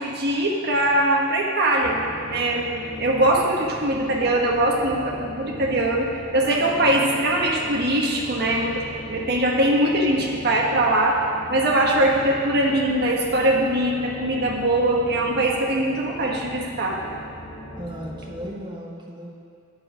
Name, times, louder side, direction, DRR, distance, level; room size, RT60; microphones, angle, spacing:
voice 1, 0.0-2.0 2.3-2.6 3.0-6.1 6.3-11.2 11.5-17.0, right 1 dB, 50° right, -1 dB, 1.2 m, -21 dB
sound 1, 1.8-18.6, left 1 dB, 35° left, 1.1 m, -39 dB
voice 2, 17.8-19.3, equal, 20° right, -2 dB, 1.1 m, -36 dB
9.6 x 6.8 x 5.0 m, 2.3 s
head